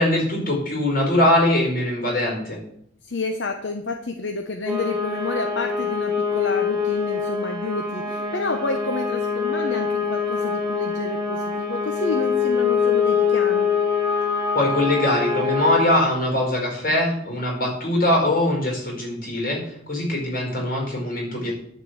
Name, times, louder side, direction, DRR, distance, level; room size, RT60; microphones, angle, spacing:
voice 1, 0.0-2.6 14.5-19.6 19.9-21.5, left 1 dB, 50° left, 0 dB, 4.6 m, -22 dB
voice 2, 3.0-13.7, left 3 dB, 75° left, 4 dB, 0.9 m, -30 dB
sound 1, 4.7-15.8, left 5 dB, ahead, 2.3 m, -24 dB
11.0 x 4.5 x 8.0 m, 0.71 s
head